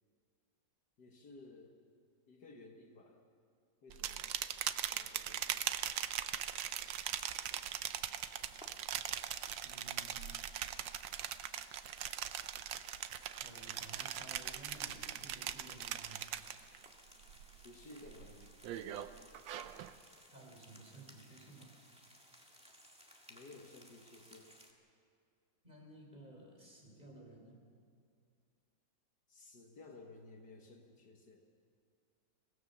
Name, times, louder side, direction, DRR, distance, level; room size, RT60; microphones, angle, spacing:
voice 1, 1.0-1.8 2.3-3.2 3.8-4.4 4.9-5.8 17.6-18.6 23.3-24.5 29.3-31.4, left 2 dB, 60° left, 2 dB, 2.0 m, -56 dB
sound 1, 3.9-16.9 17.2-17.6 18.0-19.9, right 11 dB, 85° right, 1.5 m, -40 dB
sound 2, 6.3-24.7, equal, 5° right, 1.8 m, -60 dB
voice 2, 9.6-10.5 13.4-16.2 20.3-21.8 25.6-27.6, right 2 dB, 25° right, -1 dB, 4.0 m, -55 dB
23.5 x 18.0 x 6.8 m, 2.3 s
omnidirectional pair, 2.0 m